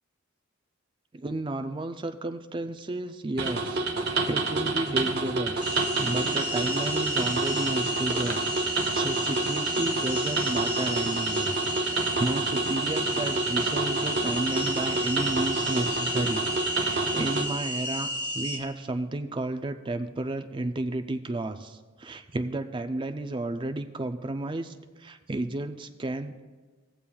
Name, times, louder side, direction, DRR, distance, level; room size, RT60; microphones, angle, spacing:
voice 1, 1.1-11.5 11.8-16.4 16.7-18.1 18.3-26.4, right 2 dB, 20° right, 8 dB, 0.3 m, -32 dB
sound 1, 3.4-17.4, right 3 dB, 45° right, 0.9 m, -28 dB
sound 2, 5.6-18.6, equal, 85° left, 1.8 m, -32 dB
17.5 x 7.0 x 2.3 m, 1.4 s
head